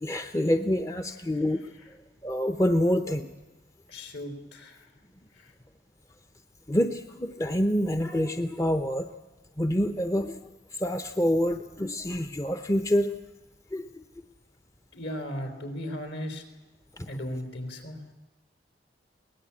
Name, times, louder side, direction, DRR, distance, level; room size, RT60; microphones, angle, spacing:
voice 1, 0.0-1.6 2.2-3.3 6.7-9.1 9.6-13.1 13.7-14.0 17.0-17.1, equal, 15° left, 9 dB, 0.8 m, -27 dB
voice 2, 3.9-4.9 5.4-5.5 14.9-16.4 17.1-18.0, equal, 65° left, 6 dB, 4.1 m, -36 dB
22.5 x 18.5 x 8.6 m, 1.2 s
head